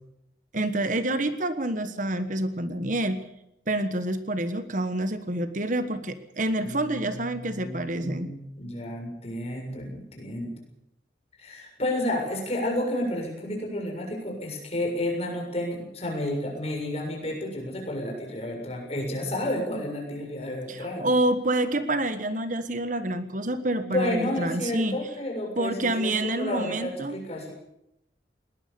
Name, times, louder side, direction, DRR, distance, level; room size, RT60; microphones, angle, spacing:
voice 1, 0.5-3.2 3.7-8.3 20.7-25.0 25.6-27.2, right 1 dB, 45° right, 11 dB, 1.4 m, -27 dB
voice 2, 6.6-10.5 11.4-21.1 23.8-27.5, left 1 dB, 35° left, 1 dB, 6.9 m, -31 dB
21.0 x 19.0 x 7.0 m, 0.82 s
head